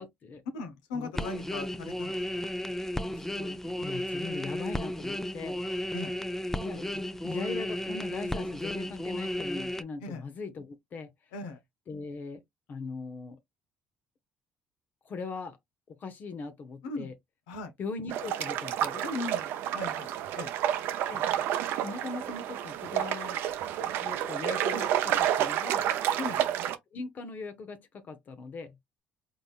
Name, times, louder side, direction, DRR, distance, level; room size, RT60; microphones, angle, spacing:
voice 1, 0.0-0.4 0.9-1.1 3.8-5.6 6.6-11.1 11.9-12.4 12.7-13.4 15.0-15.6 16.0-17.1 17.8-19.0 21.0-21.2 21.8-23.4 24.0-25.9 26.9-28.8, left 4 dB, 50° left, 0.8 m, -40 dB
voice 2, 0.5-2.4 3.1-3.8 5.9-6.1 10.0-10.2 11.3-11.6 16.8-17.1 17.5-17.7 19.0-20.5 26.2-26.4, left 3 dB, 90° left, 0.9 m, -39 dB
sound 1, 1.1-9.8, left 1 dB, 10° left, 0.5 m, -34 dB
sound 2, 18.1-26.8, right 11 dB, 70° right, 0.6 m, -30 dB
4.0 x 3.8 x 2.4 m
supercardioid pair, 70°, 4 cm